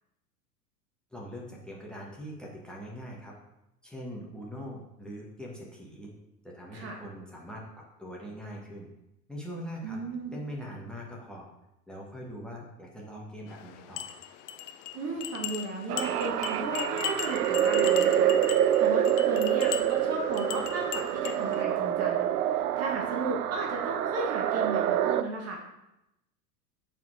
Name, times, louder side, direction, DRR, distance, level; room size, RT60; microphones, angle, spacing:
voice 1, 1.1-3.3 3.8-6.1 6.4-8.9 9.3-10.0 10.3-11.5 11.9-14.1, equal, ahead, -3 dB, 1.6 m, -42 dB
voice 2, 9.8-10.3 14.9-18.4 18.8-22.3 22.6-25.6, right 2 dB, 30° right, 0 dB, 1.4 m, -35 dB
sound 1, 13.5-21.6, left 10 dB, 30° left, 0.6 m, -39 dB
sound 2, 15.9-25.2, right 10 dB, 65° right, 0.6 m, -26 dB
7.2 x 4.4 x 4.8 m, 0.88 s
figure-of-eight pair, 90°, 49 cm